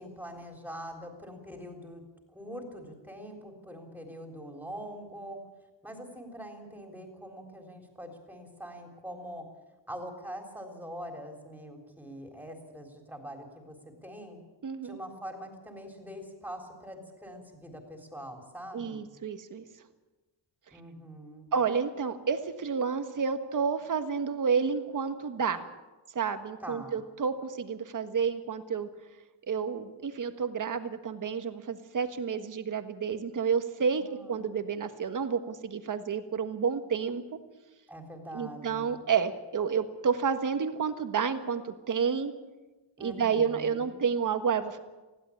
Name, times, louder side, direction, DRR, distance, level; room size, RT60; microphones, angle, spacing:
voice 1, 0.0-2.0 2.3-5.4 5.8-9.5 9.9-14.4 14.8-19.1 20.7-21.5 26.6-27.0 33.8-34.3 37.9-39.0 43.0-44.0, equal, 5° right, 3 dB, 3.7 m, -44 dB
voice 2, 14.6-15.0 18.7-19.6 21.5-25.7 26.1-28.9 29.5-34.0 34.3-37.4 38.3-42.3 43.0-44.8, right 6 dB, 40° right, 8 dB, 1.5 m, -30 dB
20.5 x 15.5 x 8.6 m, 1.2 s
wide cardioid pair, 150°, 45 cm